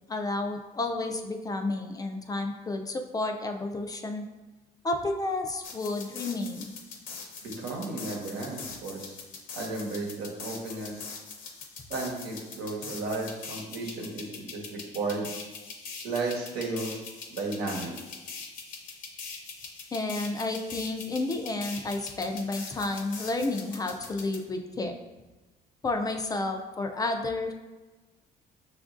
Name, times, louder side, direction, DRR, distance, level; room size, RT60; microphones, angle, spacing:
voice 1, 0.1-4.2 4.8-6.7 19.9-24.9 25.8-27.5, left 2 dB, 20° left, 5 dB, 0.3 m, -31 dB
sound 1, 5.6-24.4, left 5 dB, 55° left, 0.7 m, -42 dB
voice 2, 7.4-9.1 9.5-11.0 11.9-15.3 16.0-17.0 17.3-17.9, right 3 dB, 85° right, -1 dB, 1.0 m, -34 dB
5.9 x 2.4 x 2.5 m, 1.2 s
cardioid pair, 110°, 17 cm